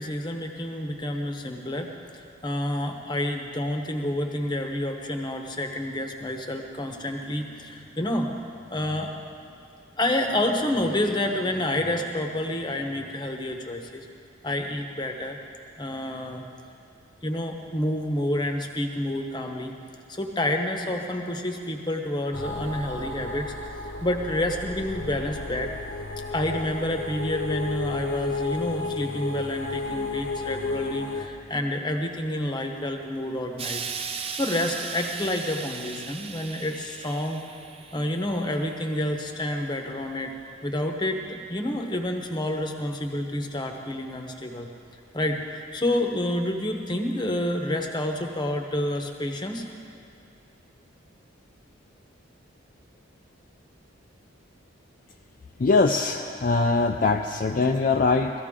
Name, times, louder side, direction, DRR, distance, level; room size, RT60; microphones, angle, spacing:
voice 1, 0.0-9.1 10.0-14.1 14.4-15.4 15.8-16.5 17.2-19.7 20.1-23.5 23.8-25.7 26.3-33.8 34.3-37.4 37.9-40.3 40.6-44.7 45.1-49.6, left 1 dB, 20° left, 3 dB, 0.9 m, -29 dB
sound 1, 22.3-31.3, left 3 dB, 65° left, 0.8 m, -33 dB
Explosion, 33.6-38.9 39.7-39.8, right 6 dB, 30° right, 0.5 m, -37 dB
voice 2, 55.6-58.3, left 3 dB, 40° left, 3 dB, 0.4 m, -22 dB
18.0 x 14.0 x 3.7 m, 2.4 s
head